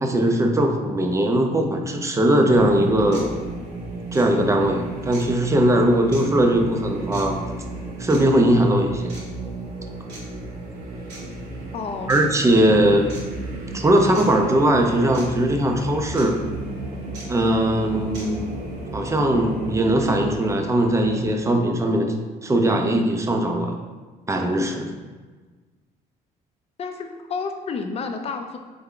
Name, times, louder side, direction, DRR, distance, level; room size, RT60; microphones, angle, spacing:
voice 1, 0.0-3.4 4.1-7.4 8.0-9.1 12.1-13.1 13.7-16.4 17.3-18.6 18.9-22.1 22.4-23.8 24.3-24.9, right 1 dB, 15° right, 3 dB, 0.5 m, -20 dB
sound 1, 2.4-2.5 3.1-3.3 4.1-4.3 5.1-5.3 6.1-6.2 7.1-7.3 8.1-8.2 9.1-9.3 10.1-10.2 11.1-11.2 12.1-12.2 13.1-13.2 14.1-14.3 15.1-15.3 16.1-16.3 17.1-17.3 18.1-18.3, right 2 dB, 85° right, 1.4 m, -40 dB
sound 2, 2.5-21.5, right 2 dB, 55° right, 1.2 m, -34 dB
voice 2, 11.7-12.2 26.8-28.6, left 4 dB, 35° left, 6 dB, 0.5 m, -30 dB
3.4 x 3.4 x 3.7 m, 1.4 s
cardioid pair, 110°, 17 cm